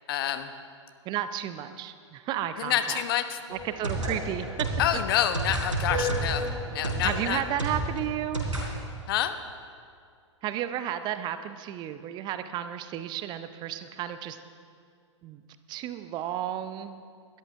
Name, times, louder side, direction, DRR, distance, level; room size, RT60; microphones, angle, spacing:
voice 1, 0.1-0.5 2.6-3.4 4.8-7.4 9.1-9.3, left 10 dB, 50° left, 9 dB, 0.9 m, -28 dB
voice 2, 1.0-3.0 3.5-4.5 7.0-8.5 10.4-14.4 15.2-15.4 15.7-17.0, right 11 dB, 30° right, 11 dB, 0.6 m, -33 dB
sound 1, 3.5-8.7, right 1 dB, 85° right, 4.0 m, -30 dB
21.0 x 13.0 x 3.6 m, 2.2 s
figure-of-eight pair, 105°, 16 cm